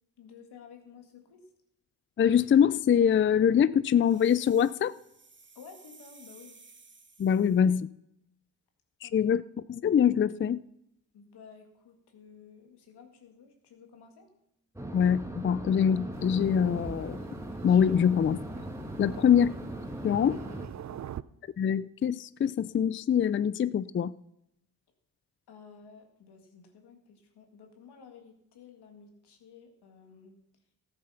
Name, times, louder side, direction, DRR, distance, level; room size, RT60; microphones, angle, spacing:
voice 1, 0.2-1.4 5.6-6.5 9.0-9.3 11.1-14.3 19.1-19.2 20.9-21.2 25.5-30.4, left 6 dB, 85° left, 2.0 m, -53 dB
voice 2, 2.2-4.9 7.2-7.9 9.0-9.4 9.7-10.6 14.9-17.2 17.6-18.4 19.0-19.5 20.0-20.4 21.6-24.1, left 8 dB, 30° left, 0.4 m, -24 dB
sound 1, 4.0-7.7, right 4 dB, 30° right, 1.4 m, -56 dB
sound 2, 14.8-20.7, right 1 dB, 5° right, 1.8 m, -39 dB
Thunder, 16.1-21.2, right 10 dB, 45° right, 0.5 m, -46 dB
13.5 x 7.8 x 5.7 m
supercardioid pair, 50°, 39 cm